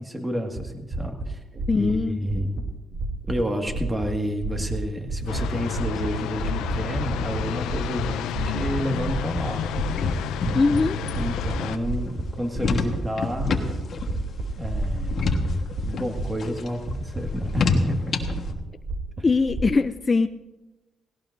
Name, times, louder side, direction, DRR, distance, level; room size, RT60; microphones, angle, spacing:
voice 1, 0.0-1.4 1.8-2.7 3.3-13.5 14.6-15.3 15.8-18.1, equal, 15° right, 4 dB, 1.8 m, -30 dB
sound 1, 0.6-0.7 0.9-1.3 1.5-1.9 2.2-2.6 2.9-3.3 3.7-4.1 4.4-4.8 5.1-5.4 5.7-6.1 6.4-7.4 7.7-8.1 8.4-8.7 9.0-9.4 9.7-10.8 11.1-11.5 11.8-12.2 12.5-13.0 13.3-13.7 14.0-15.8 16.1-16.5 16.8-17.9 18.2-19.7, right 2 dB, 35° right, 2.9 m, -30 dB
voice 2, 1.7-2.2 10.5-11.0 19.2-20.3, left 4 dB, 30° left, 10 dB, 0.4 m, -21 dB
sound 2, 5.3-11.8, left 9 dB, 90° left, 0.6 m, -30 dB
sound 3, 9.6-18.5, left 4 dB, 55° left, 1.3 m, -29 dB
18.0 x 17.5 x 2.6 m, 1.1 s
cardioid pair, 90°, 0 cm